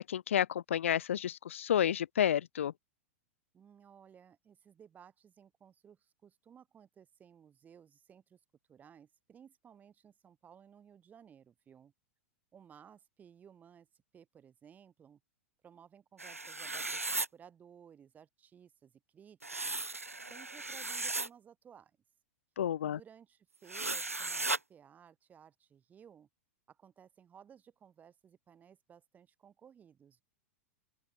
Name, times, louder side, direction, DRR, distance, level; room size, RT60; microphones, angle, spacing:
voice 1, 0.0-2.7 22.6-23.0, left 10 dB, 65° left, 0.5 m, -30 dB
voice 2, 3.5-8.4 8.7-11.9 12.5-15.2 15.6-19.8 20.3-22.0 22.8-26.3 26.7-30.2, right 8 dB, 20° right, 3.9 m, -58 dB
sound 1, 16.2-17.3 19.4-21.3 23.7-24.6, right 3 dB, 85° right, 0.7 m, -36 dB
open air
figure-of-eight pair, 95°, 7 cm